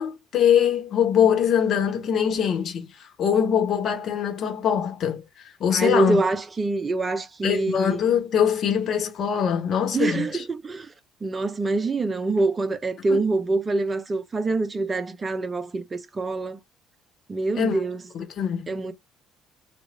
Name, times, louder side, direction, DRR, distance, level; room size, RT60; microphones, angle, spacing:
voice 1, 0.0-5.2 5.6-6.2 7.4-10.4 13.1-13.2 17.6-17.8 18.1-18.7, left 8 dB, 50° left, 1.2 m, -23 dB
voice 2, 5.7-8.1 9.9-10.9 11.2-16.6 17.3-18.0 18.7-18.9, right 3 dB, 30° right, 0.7 m, -25 dB
3.2 x 2.5 x 3.5 m
hypercardioid pair, 55°, 0 cm